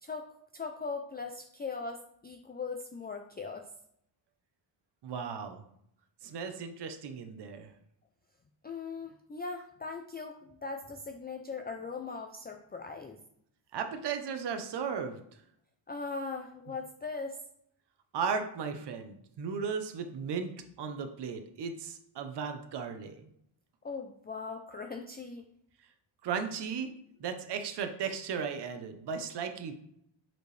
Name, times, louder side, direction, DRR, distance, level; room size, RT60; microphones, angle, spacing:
voice 1, 0.5-3.6 8.6-13.2 15.9-17.4 23.8-25.4, left 4 dB, 20° left, 3 dB, 0.4 m, -39 dB
voice 2, 5.0-5.6 6.2-7.7 13.7-15.2 18.1-23.3 26.2-26.9 27.2-29.7, right 6 dB, 55° right, 7 dB, 0.7 m, -36 dB
7.9 x 4.4 x 3.2 m, 0.71 s
wide cardioid pair, 170°, 48 cm